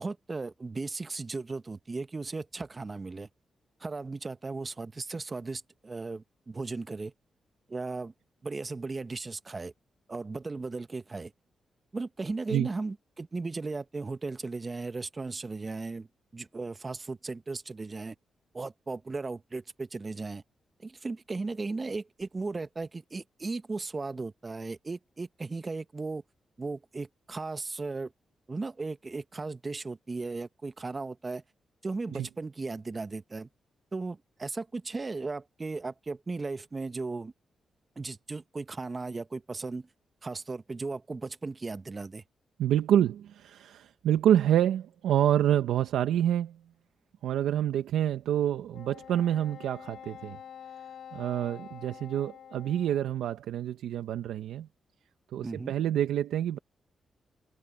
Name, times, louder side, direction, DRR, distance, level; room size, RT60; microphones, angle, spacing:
voice 1, 0.0-3.3 3.8-7.1 7.7-8.1 8.4-9.7 10.1-11.3 11.9-16.1 16.3-18.1 18.5-20.4 20.8-26.2 26.6-28.1 28.5-31.4 31.8-33.5 33.9-37.3 38.0-39.9 40.2-42.2 55.4-55.7, right 3 dB, 35° right, 1.4 m, -36 dB
voice 2, 42.6-46.6 47.2-50.4 51.1-54.7 55.3-56.6, right 11 dB, 85° right, 1.1 m, -27 dB
Wind instrument woodwind instrument, 48.7-53.3, left 9 dB, 75° left, 5.3 m, -47 dB
supercardioid pair, 55°, 0 cm